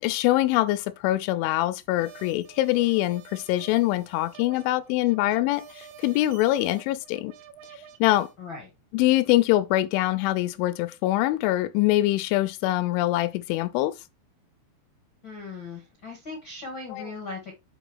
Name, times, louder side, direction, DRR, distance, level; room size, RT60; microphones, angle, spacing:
voice 1, 0.0-7.3 8.0-8.3 8.9-13.9 16.9-17.1, left 16 dB, 85° left, 2.9 m, -24 dB
sound 1, 2.0-8.3, right 8 dB, 70° right, 2.7 m, -49 dB
voice 2, 8.4-8.7 15.2-17.5, left 3 dB, 65° left, 1.2 m, -38 dB
8.1 x 5.4 x 3.4 m
omnidirectional pair, 5.5 m